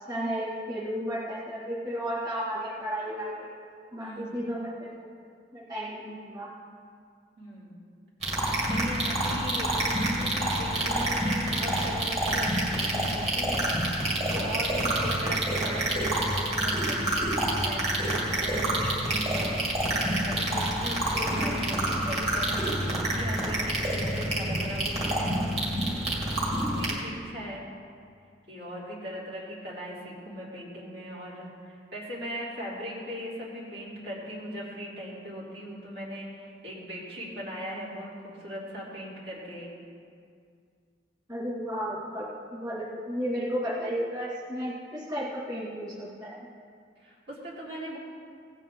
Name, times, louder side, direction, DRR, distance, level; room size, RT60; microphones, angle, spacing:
voice 1, 0.1-3.6 3.9-5.1 5.5-6.5 21.1-21.2 41.3-42.3 42.5-46.5, equal, 25° right, -8 dB, 2.2 m, -33 dB
voice 2, 4.0-4.4 7.4-7.7 8.7-13.7 14.3-17.8 18.3-19.6 20.1-25.4 26.4-27.6 28.5-39.7 47.0-48.0, equal, 70° right, -7 dB, 3.3 m, -39 dB
sound 1, 8.2-26.9, right 1 dB, 40° right, 2.5 m, -28 dB
16.5 x 9.0 x 3.8 m, 2.2 s
head